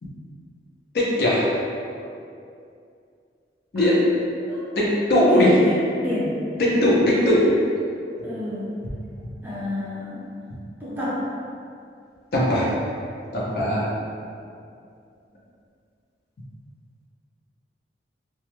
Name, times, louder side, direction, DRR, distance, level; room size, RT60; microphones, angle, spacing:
voice 1, 0.9-1.5 3.7-4.0 4.8-5.6 6.6-7.5 12.3-12.7 13.3-13.9, left 1 dB, 55° left, -5 dB, 0.5 m, -19 dB
voice 2, 5.2-7.0 8.2-8.8 9.4-10.3 10.8-11.2 14.2-14.3, left 1 dB, 10° right, -10 dB, 0.5 m, -29 dB
2.2 x 2.0 x 2.9 m, 2.4 s
head